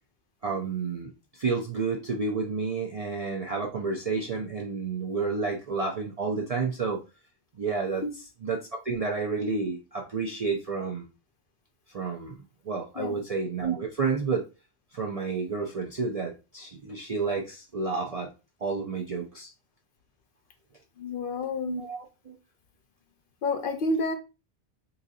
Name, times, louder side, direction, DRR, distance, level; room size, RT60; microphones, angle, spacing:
voice 1, 0.4-7.0 7.6-8.0 8.4-11.1 11.9-12.3 12.7-14.5 14.9-18.3 18.6-19.5 21.6-22.0 22.3-22.4, right 4 dB, 55° right, 0 dB, 0.4 m, -30 dB
voice 2, 21.0-21.8 23.4-24.1, left 2 dB, 60° left, 6 dB, 0.6 m, -29 dB
3.9 x 2.7 x 2.6 m, 0.29 s
omnidirectional pair, 1.2 m